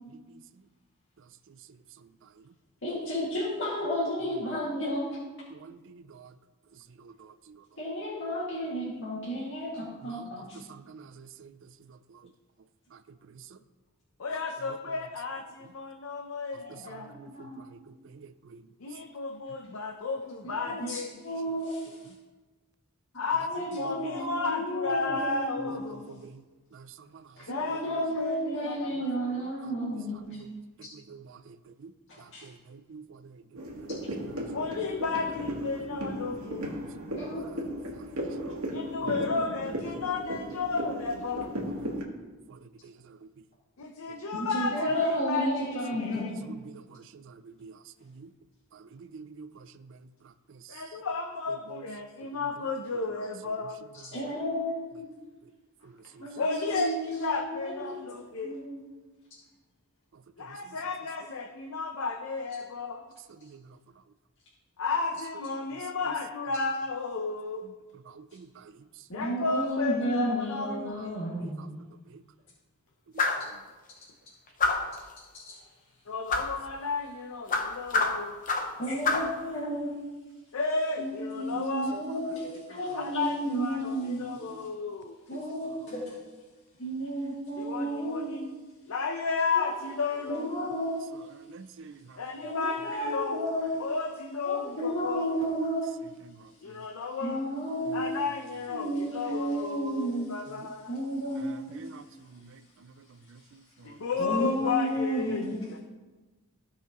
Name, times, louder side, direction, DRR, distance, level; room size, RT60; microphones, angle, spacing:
voice 1, 2.8-5.1 7.8-10.6 16.6-17.6 20.4-22.0 23.3-25.8 27.4-30.4 32.1-32.5 37.1-37.6 44.3-46.5 54.0-55.0 56.2-58.0 58.4-58.8 69.1-71.6 78.8-80.0 81.0-84.2 85.3-86.2 86.8-88.3 89.5-89.7 90.3-91.0 92.4-93.8 94.5-95.9 97.2-98.1 98.7-100.3 100.9-101.5 104.2-105.6, equal, 60° left, -8 dB, 2.1 m, -32 dB
voice 2, 14.2-17.2 18.8-21.1 23.1-26.2 27.5-29.1 34.5-36.8 38.7-41.6 43.8-46.3 50.7-53.8 56.0-58.6 60.4-63.0 64.8-67.6 69.1-71.2 76.1-78.3 80.5-82.0 82.9-85.2 87.6-88.6 88.9-90.5 92.2-93.4 93.8-95.3 96.6-97.5 97.9-100.9 103.8-105.4 105.7-105.8, left 4 dB, 75° left, 4 dB, 0.6 m, -33 dB
sound 1, 33.5-42.0, equal, 85° right, 1.5 m, -36 dB
voice 3, 38.2-38.6 47.6-47.7 48.2-48.3 49.1-49.5 68.3-68.5 82.4-82.5 91.5-92.0 101.8-102.0, right 4 dB, 60° right, 13 dB, 0.4 m, -45 dB
sound 2, 73.2-73.5 74.6-75.0 76.3-76.5 77.5-78.8 79.0-79.3, left 3 dB, 40° left, 0.8 m, -27 dB
15.5 x 5.6 x 3.0 m, 1.2 s
head